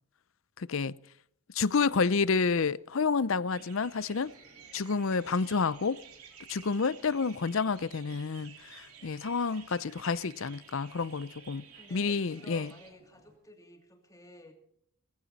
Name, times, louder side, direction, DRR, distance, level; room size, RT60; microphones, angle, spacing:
voice 1, 0.6-1.0 1.5-4.3 4.7-6.0 6.5-11.7 11.9-12.7, left 4 dB, 60° left, 0.6 m, -29 dB
sound 1, 3.4-13.4, right 1 dB, 50° right, 6.6 m, -63 dB
sound 2, 3.5-12.9, right 7 dB, 85° right, 3.2 m, -53 dB
voice 2, 11.8-14.5, left 1 dB, 15° left, 2.7 m, -53 dB
18.5 x 15.5 x 4.1 m
head